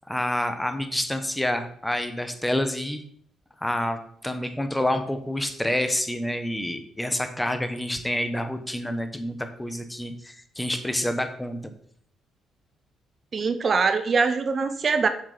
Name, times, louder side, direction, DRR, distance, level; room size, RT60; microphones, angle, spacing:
voice 1, 0.1-3.0 3.6-11.6, left 1 dB, 5° left, 8 dB, 1.1 m, -28 dB
voice 2, 13.3-15.1, right 4 dB, 45° right, 10 dB, 0.8 m, -23 dB
7.2 x 6.5 x 5.1 m, 0.62 s
cardioid pair, 90°, 0 cm